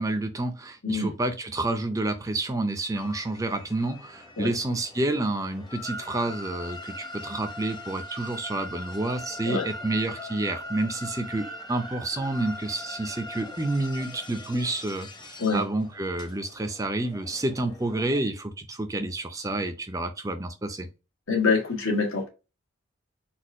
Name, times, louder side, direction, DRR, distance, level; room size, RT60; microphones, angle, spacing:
voice 1, 0.0-20.9, right 2 dB, 15° right, 8 dB, 0.4 m, -29 dB
sound 1, 2.9-18.2, left 1 dB, 20° left, 0.7 m, -41 dB
voice 2, 21.3-22.3, left 4 dB, 80° left, 2 dB, 1.4 m, -25 dB
4.2 x 2.4 x 4.6 m, 0.29 s
head